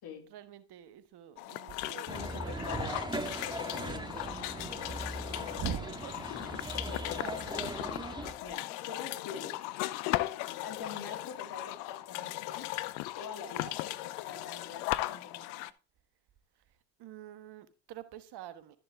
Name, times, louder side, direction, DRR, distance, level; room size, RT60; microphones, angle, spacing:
voice 1, 0.3-3.2 3.7-4.3 5.5-7.5 17.0-18.8, right 9 dB, 65° right, 12 dB, 1.3 m, -45 dB
sound 1, 1.4-15.7, left 17 dB, 85° left, 0.6 m, -37 dB
voice 2, 2.1-3.3 3.9-4.0 8.4-9.6 10.6-12.7 13.1-15.6, left 6 dB, 60° left, 5 dB, 2.7 m, -45 dB
sound 2, 2.1-8.3, right 2 dB, 10° right, 1.7 m, -39 dB
Wind instrument woodwind instrument, 3.6-11.5, left 6 dB, 40° left, 2.2 m, -58 dB
12.5 x 6.8 x 3.6 m, 0.34 s
hypercardioid pair, 55°, 42 cm